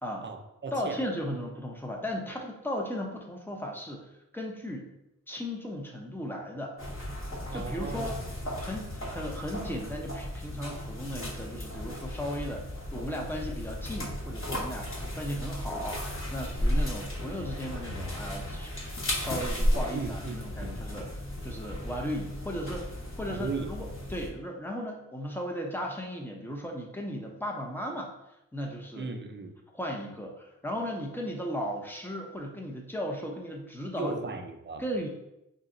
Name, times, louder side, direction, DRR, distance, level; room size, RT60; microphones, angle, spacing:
voice 1, 0.2-1.0 7.5-8.3 19.9-20.7 23.3-23.7 28.9-29.5 33.9-34.8, right 4 dB, 35° right, 6 dB, 0.5 m, -36 dB
voice 2, 0.7-4.9 5.3-6.7 7.2-8.2 8.6-12.6 12.9-28.1 28.5-29.1 29.7-34.2 34.8-35.1, equal, 5° left, 0 dB, 0.7 m, -36 dB
sound 1, 6.8-24.3, equal, 40° left, 1.1 m, -34 dB
3.9 x 2.1 x 3.7 m, 0.86 s
wide cardioid pair, 75°, 32 cm